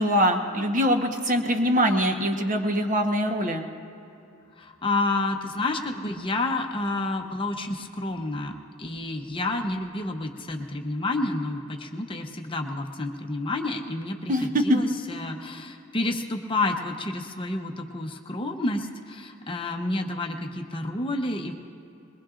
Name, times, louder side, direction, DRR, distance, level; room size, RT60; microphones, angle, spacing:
voice 1, 0.0-3.7 14.3-14.8, equal, 40° right, 4 dB, 1.0 m, -23 dB
voice 2, 4.6-21.5, left 2 dB, 25° left, 3 dB, 0.8 m, -29 dB
22.0 x 21.5 x 2.5 m, 2.7 s
head